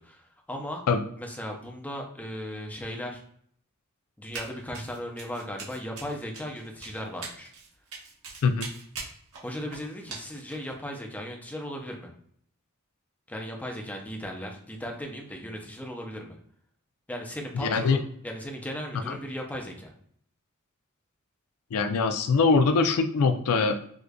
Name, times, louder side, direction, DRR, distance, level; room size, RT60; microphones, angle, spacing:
voice 1, 0.0-0.8 1.2-3.2 4.2-7.5 9.4-12.1 13.3-16.4 17.1-19.9, equal, 5° left, 1 dB, 0.6 m, -37 dB
Run, 4.3-4.5 4.7-10.7, right 4 dB, 80° right, 1.2 m, -41 dB
voice 2, 17.5-18.0 19.1-19.2 21.7-23.9, left 4 dB, 90° left, 8 dB, 0.4 m, -23 dB
4.7 x 2.5 x 2.2 m, 0.64 s
head